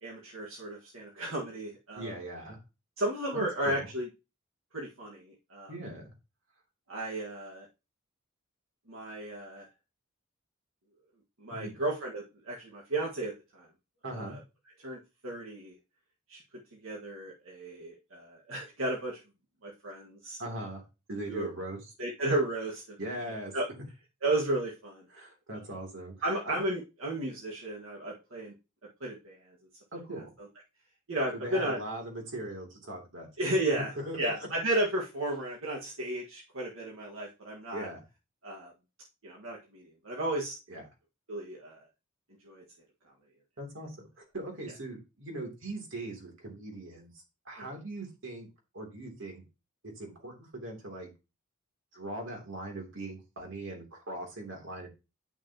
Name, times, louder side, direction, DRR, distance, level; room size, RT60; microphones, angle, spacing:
voice 1, 0.0-2.1 3.0-4.1 4.7-5.7 6.9-7.7 8.9-9.7 11.4-13.7 14.1-14.4 14.8-15.8 16.3-16.4 16.8-19.2 19.6-20.4 21.3-21.5 22.0-22.8 23.5-23.7 24.2-25.0 26.2-28.5 29.0-29.6 31.1-31.8 33.4-33.9 34.2-37.9 38.4-38.7 39.2-40.6 41.3-41.8 42.4-42.6 47.6-47.7, right 1 dB, 80° right, -2 dB, 1.8 m, -33 dB
voice 2, 1.9-2.6 3.3-3.9 5.7-6.1 11.5-11.7 14.0-14.4 20.4-20.8 21.1-21.8 23.0-23.5 25.1-26.6 29.9-30.3 31.3-33.3 33.7-34.5 37.7-38.0 40.7-40.8 43.6-48.5 48.7-49.4 49.8-51.1 51.9-54.9, right 1 dB, 65° right, 1 dB, 3.2 m, -40 dB
11.0 x 6.1 x 3.0 m, 0.28 s
head